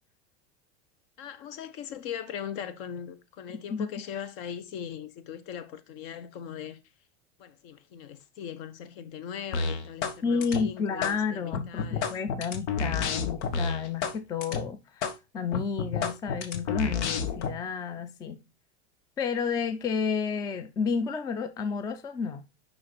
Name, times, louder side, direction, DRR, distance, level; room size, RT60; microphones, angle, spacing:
voice 1, 1.2-6.8 7.4-12.1, left 8 dB, 55° left, 1.4 m, -40 dB
sound 1, 9.5-10.2 10.4-11.1 11.5-14.1 14.4-14.6 15.0-15.1 15.5-17.5, left 5 dB, 85° left, 1.5 m, -30 dB
voice 2, 10.2-15.0 15.3-18.4 19.2-22.4, left 5 dB, 10° left, 0.3 m, -31 dB
6.4 x 5.9 x 4.0 m
supercardioid pair, 150°, 34 cm